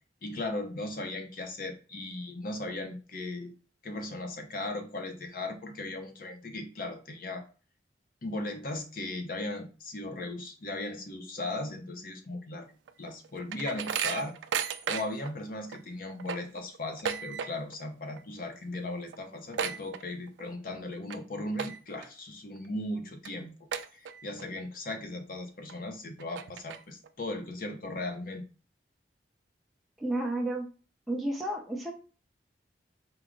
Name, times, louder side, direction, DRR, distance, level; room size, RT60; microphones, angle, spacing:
voice 1, 0.2-3.5 3.8-7.4 8.2-12.7 13.0-14.3 14.8-23.5 23.9-28.4, left 2 dB, 50° left, 5 dB, 0.7 m, -37 dB
sound 1, 12.9-15.3 15.7-15.8 16.1-17.8 18.1-18.4 18.7-18.8 19.1-20.5 20.9-21.2 21.5-22.1 22.6-22.7 23.2-23.3 23.7-24.4 24.9-25.0 25.7-25.8 26.2-27.1, right 7 dB, 90° right, 0.3 m, -34 dB
voice 2, 30.0-30.6 31.1-31.9, right 1 dB, ahead, -1 dB, 0.6 m, -31 dB
4.6 x 2.0 x 3.7 m, 0.35 s
head